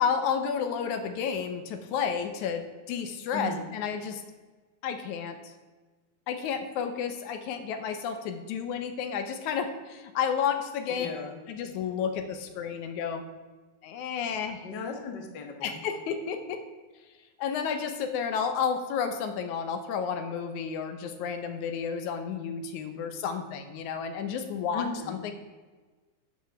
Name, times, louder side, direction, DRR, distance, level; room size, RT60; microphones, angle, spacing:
voice 1, 0.0-4.2 4.8-5.5 6.3-11.1 11.5-13.2 13.8-14.6 15.6-16.6 17.4-25.3, left 7 dB, 80° left, 8 dB, 2.3 m, -31 dB
voice 2, 3.3-3.7 10.9-11.4 14.6-15.8 24.7-25.2, left 3 dB, 45° left, 4 dB, 1.6 m, -36 dB
10.0 x 6.2 x 7.0 m, 1.3 s
omnidirectional pair, 3.4 m